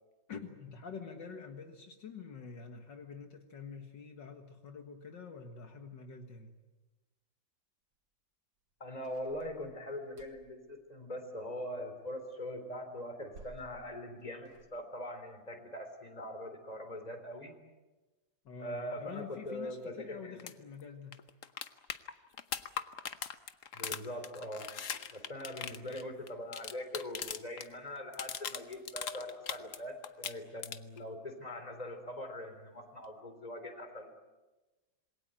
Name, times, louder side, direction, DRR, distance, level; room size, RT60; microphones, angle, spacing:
voice 1, 0.3-6.5 18.4-21.2, left 5 dB, 70° left, 5 dB, 2.3 m, -47 dB
voice 2, 8.8-17.5 18.6-20.4 23.7-24.7 25.1-34.1, left 1 dB, 20° left, 7 dB, 3.6 m, -42 dB
sound 1, 9.0-10.6 13.0-14.7, right 3 dB, 75° right, 2.5 m, -57 dB
sound 2, 20.4-20.5 20.8-20.9 21.1-27.7 28.0-29.8 30.0-31.0 33.0-33.1, left 7 dB, 50° left, 1.2 m, -40 dB
27.5 x 21.0 x 9.0 m, 1.2 s
omnidirectional pair, 2.0 m